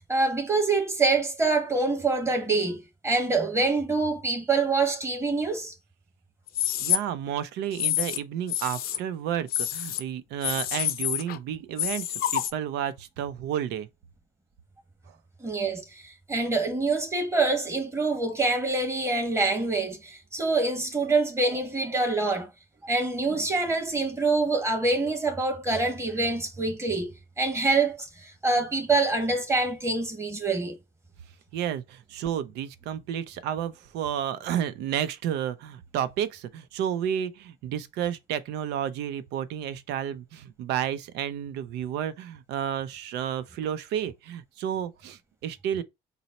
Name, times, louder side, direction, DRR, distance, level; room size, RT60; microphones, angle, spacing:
voice 1, 0.1-5.7 15.4-22.5 22.8-30.8, right 3 dB, 15° right, 1.2 m, -26 dB
sound 1, 6.5-7.0 7.7-8.2 8.5-9.0 9.5-10.0 10.4-11.4 11.8-12.5, left 12 dB, 65° left, 0.5 m, -28 dB
voice 2, 6.8-13.9 31.5-45.8, right 9 dB, 85° right, 0.5 m, -31 dB
4.0 x 2.0 x 4.1 m
cardioid pair, 110°, 17 cm